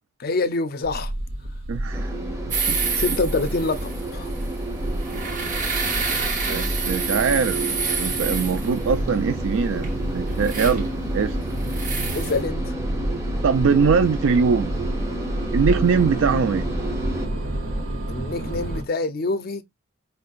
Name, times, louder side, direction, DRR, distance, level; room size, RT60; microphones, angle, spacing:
voice 1, 0.2-1.1 3.0-4.3 12.1-12.7 18.1-19.6, left 3 dB, 45° left, 0.4 m, -26 dB
sound 1, 0.8-18.8, right 1 dB, 85° right, 1.0 m, -29 dB
voice 2, 1.7-2.1 2.7-2.8 6.4-11.4 13.4-14.8 15.5-16.7, right 5 dB, 70° right, 0.4 m, -22 dB
sound 2, 1.9-17.3, right 2 dB, 15° right, 0.8 m, -33 dB
sound 3, 2.5-12.4, right 5 dB, 40° right, 1.0 m, -29 dB
5.3 x 2.2 x 2.4 m
head